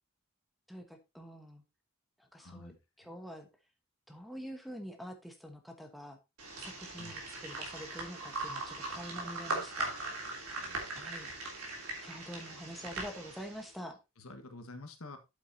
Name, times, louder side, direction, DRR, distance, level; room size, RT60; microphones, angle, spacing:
voice 1, 0.7-1.6 2.2-2.7 3.0-3.5 4.1-6.2 6.6-9.9 10.9-11.3 12.0-14.0, equal, ahead, 5 dB, 1.2 m, -46 dB
voice 2, 2.4-2.8 7.0-7.1 10.5-10.9 14.2-15.2, left 2 dB, 80° left, 6 dB, 1.5 m, -49 dB
sound 1, 6.4-13.7, right 2 dB, 90° right, 3.1 m, -40 dB
8.3 x 8.3 x 2.8 m, 0.24 s
head